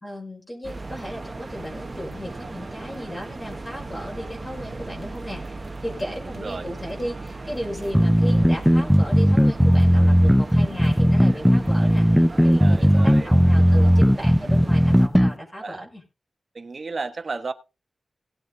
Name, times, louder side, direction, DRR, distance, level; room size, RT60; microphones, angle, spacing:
voice 1, 0.0-16.0, equal, 25° left, -2 dB, 5.7 m, -35 dB
sound 1, 0.6-15.1, right 3 dB, 35° right, 1.4 m, -37 dB
voice 2, 6.4-6.7 11.3-11.4 12.6-13.4 15.6-15.9 16.5-17.5, right 4 dB, 50° right, 8 dB, 1.3 m, -33 dB
sound 2, 7.9-15.3, equal, ahead, 0.6 m, -16 dB
18.0 x 7.4 x 3.9 m, 0.29 s
wide cardioid pair, 135°, 0 cm